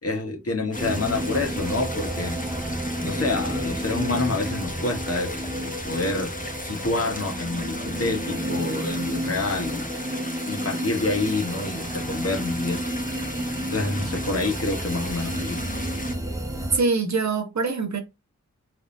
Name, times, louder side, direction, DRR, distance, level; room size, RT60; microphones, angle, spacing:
voice 1, 0.0-2.4 3.0-6.3 6.6-10.0 10.5-12.8 13.7-15.6, left 3 dB, 50° left, 1.4 m, -27 dB
sound 1, 0.7-16.1, left 1 dB, 25° left, 1.0 m, -37 dB
sound 2, 0.8-16.8, right 1 dB, 10° right, 1.1 m, -31 dB
voice 2, 16.7-18.0, right 4 dB, 65° right, 1.2 m, -23 dB
3.5 x 3.5 x 2.7 m
wide cardioid pair, 50°, 30 cm